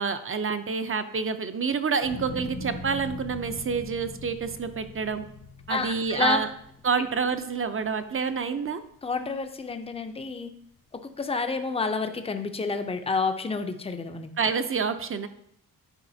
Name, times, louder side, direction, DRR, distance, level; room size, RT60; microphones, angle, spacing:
voice 1, 0.0-5.2 5.7-6.5 6.8-8.8 14.4-15.3, right 5 dB, 35° right, 9 dB, 0.5 m, -28 dB
sound 1, 2.0-8.3 8.8-9.4, left 2 dB, 85° left, 1.2 m, -41 dB
voice 2, 5.7-6.4 9.0-10.5 10.9-14.3, left 4 dB, 15° left, 7 dB, 0.5 m, -29 dB
9.8 x 4.8 x 2.7 m, 0.72 s
wide cardioid pair, 115°, 37 cm